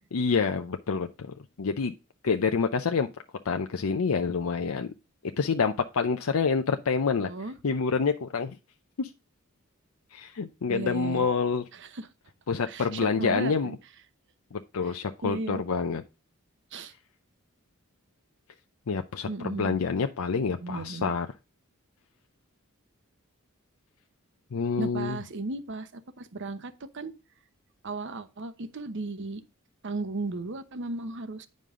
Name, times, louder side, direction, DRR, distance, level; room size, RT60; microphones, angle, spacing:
voice 1, 0.1-1.9 2.2-3.1 3.5-4.9 5.4-7.3 7.6-8.6 9.0-9.1 10.1-11.6 12.5-13.8 14.5-16.0 18.9-21.3 24.5-25.2, left 5 dB, 75° left, 0.6 m, -27 dB
voice 2, 7.2-7.6 10.7-11.3 11.7-12.1 12.7-13.8 14.8-15.0 15.2-15.6 16.7-16.9 19.3-19.8 20.6-21.1 24.8-27.2 27.8-29.4 29.8-31.5, right 2 dB, 55° right, 0.9 m, -35 dB
9.3 x 5.3 x 3.6 m
head